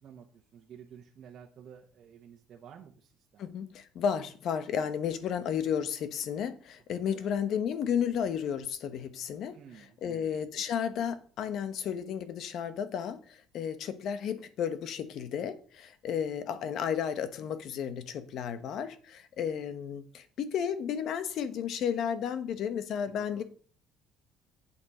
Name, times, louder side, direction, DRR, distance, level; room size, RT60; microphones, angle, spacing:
voice 1, 0.0-3.4 7.2-7.3 9.5-10.4 23.1-23.4, right 8 dB, 45° right, 1.3 m, -52 dB
voice 2, 3.4-23.4, left 8 dB, 55° left, 1.1 m, -33 dB
8.9 x 7.2 x 5.0 m
cardioid pair, 145°, 0 cm